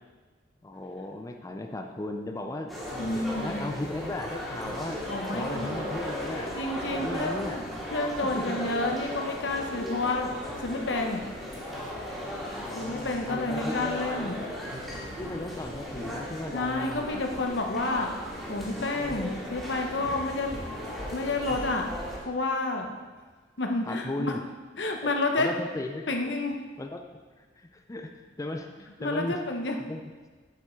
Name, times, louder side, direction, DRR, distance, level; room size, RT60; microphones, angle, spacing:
voice 1, 0.6-5.0 5.3-6.5 7.0-7.6 8.2-8.6 12.5-14.4 15.2-17.2 18.9-19.3 23.9-24.4 25.0-26.1 26.8-27.0 27.4-28.1 28.4-29.4 29.9-30.0, left 1 dB, 20° left, 4 dB, 0.5 m, -36 dB
sound 1, 2.7-22.2, equal, ahead, 2.2 m, -36 dB
voice 2, 3.0-3.8 5.1-6.0 6.5-10.3 10.6-11.2 12.7-14.5 16.5-18.1 18.5-20.6 21.1-21.9 22.2-22.9 23.6-24.3 24.8-25.5 26.1-26.6 29.0-29.8, left 2 dB, 75° left, 3 dB, 1.0 m, -30 dB
8.3 x 7.0 x 4.5 m, 1.4 s
head